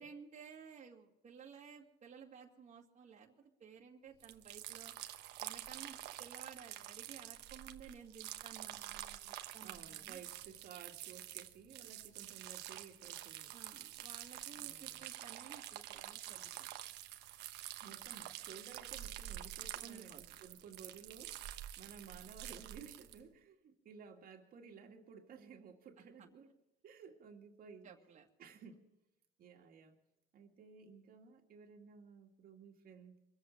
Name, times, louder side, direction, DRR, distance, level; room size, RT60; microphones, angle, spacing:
voice 1, 0.0-4.9 5.4-10.2 13.5-16.7 19.8-20.2 26.0-26.3 27.8-28.3, right 6 dB, 45° right, 0 dB, 2.0 m, -55 dB
sound 1, 4.2-23.2, right 13 dB, 85° right, 1.1 m, -48 dB
voice 2, 9.6-13.6 14.6-15.1 17.8-26.5 26.8-28.0 28.4-28.8 29.4-30.0 30.3-33.3, right 6 dB, 60° right, 2 dB, 2.0 m, -56 dB
23.5 x 8.1 x 7.2 m, 0.94 s
cardioid pair, 110°, 17 cm